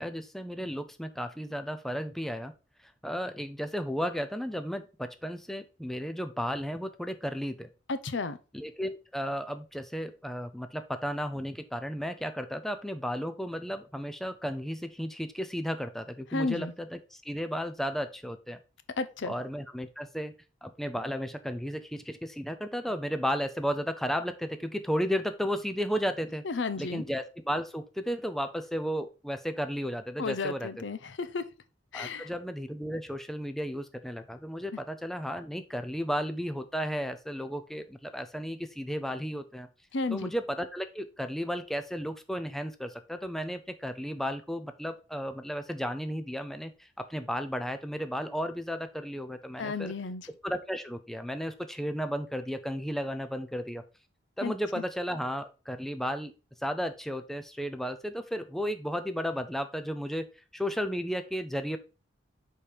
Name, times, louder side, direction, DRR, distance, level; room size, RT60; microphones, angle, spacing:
voice 1, 0.0-2.5 3.0-7.7 8.5-18.6 19.2-20.3 20.6-26.4 26.8-30.7 31.9-39.7 40.1-49.9 50.4-53.8 54.4-56.3 56.6-60.3 60.5-61.8, equal, ahead, 0.5 m, -34 dB
voice 2, 7.9-8.4 16.3-16.7 19.0-19.3 26.4-27.0 30.2-31.4 31.9-32.3 39.9-40.3 49.6-50.3 54.4-54.5, left 3 dB, 70° left, 0.6 m, -32 dB
5.2 x 4.4 x 4.9 m
head